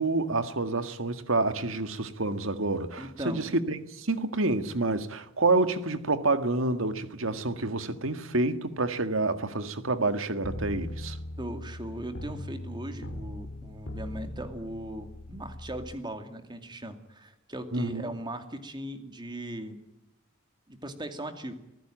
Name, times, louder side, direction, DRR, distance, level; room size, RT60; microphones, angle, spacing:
voice 1, 0.0-11.2 17.7-18.1, right 2 dB, 70° right, 1.9 m, -28 dB
voice 2, 3.0-3.4 11.4-19.8 20.7-21.5, right 1 dB, 20° right, 2.4 m, -38 dB
sound 1, 10.4-15.9, left 1 dB, 65° left, 2.4 m, -39 dB
24.5 x 15.0 x 9.2 m
head